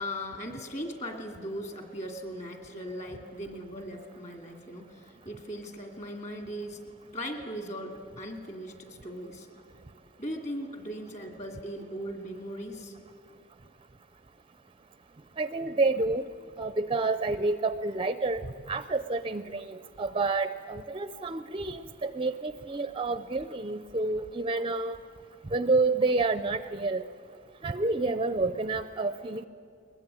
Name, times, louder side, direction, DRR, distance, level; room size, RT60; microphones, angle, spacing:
voice 1, 0.0-6.8 7.1-9.5 10.2-13.0, equal, 35° left, 4 dB, 2.5 m, -38 dB
voice 2, 15.4-16.2 16.6-18.4 18.7-25.0 25.5-27.0 27.6-29.5, right 3 dB, 25° right, 12 dB, 0.5 m, -29 dB
21.5 x 21.0 x 8.9 m, 2.3 s
head